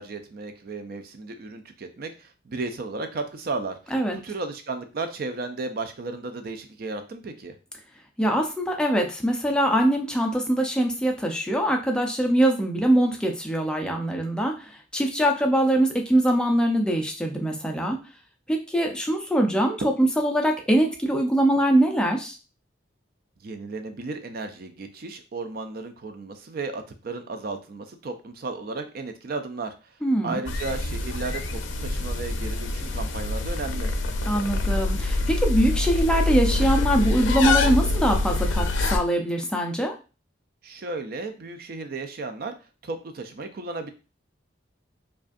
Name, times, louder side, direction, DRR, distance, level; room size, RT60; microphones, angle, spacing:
voice 1, 0.0-7.5 23.4-29.7 30.2-33.9 40.6-42.5 42.8-43.9, right 3 dB, 50° right, 7 dB, 0.4 m, -34 dB
voice 2, 8.2-18.0 18.5-22.4 30.0-30.3 34.2-39.9, right 1 dB, 5° left, 2 dB, 0.5 m, -23 dB
sound 1, 30.5-39.0, left 2 dB, 75° left, 0.5 m, -25 dB
4.8 x 2.4 x 2.6 m, 0.33 s
head